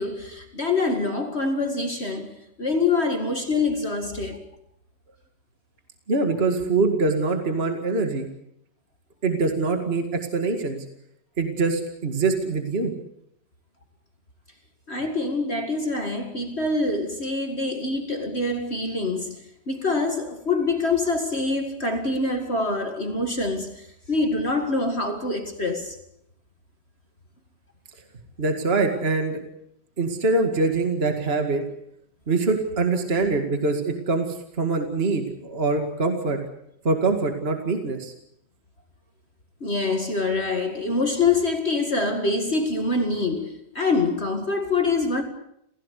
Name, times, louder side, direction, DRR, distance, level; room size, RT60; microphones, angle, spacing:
voice 1, 0.0-4.5 14.9-26.0 39.6-45.2, left 3 dB, 35° left, 2.2 m, -25 dB
voice 2, 6.1-8.3 9.2-10.8 11.4-12.9 28.4-29.4 30.0-31.6 32.3-36.4 36.8-38.1, right 3 dB, 35° right, 2.4 m, -24 dB
28.0 x 16.5 x 8.4 m
omnidirectional pair, 1.9 m